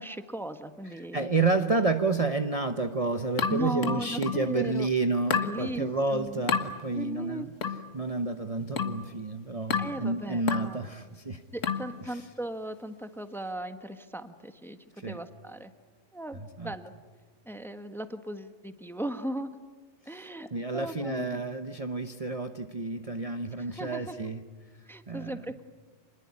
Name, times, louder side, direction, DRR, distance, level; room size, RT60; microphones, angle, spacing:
voice 1, 0.0-1.3 3.5-4.9 5.4-6.4 6.9-7.5 9.8-10.8 11.5-14.8 15.0-15.7 16.1-16.9 17.4-19.6 20.0-21.4 23.6-24.1 24.9-25.6, right 1 dB, ahead, 8 dB, 1.2 m, -37 dB
voice 2, 1.0-7.5 7.9-11.4 12.1-12.2 15.0-15.2 16.6-16.7 20.1-24.4 25.1-25.4, right 3 dB, 30° right, 6 dB, 1.0 m, -30 dB
sound 1, 3.4-4.5 5.3-5.6 6.5-6.7 7.6-7.9 8.8-9.0 9.7-10.0 10.5-10.7 11.6-11.9, left 6 dB, 85° left, 1.9 m, -29 dB
27.0 x 21.0 x 9.8 m, 1.4 s
omnidirectional pair, 1.3 m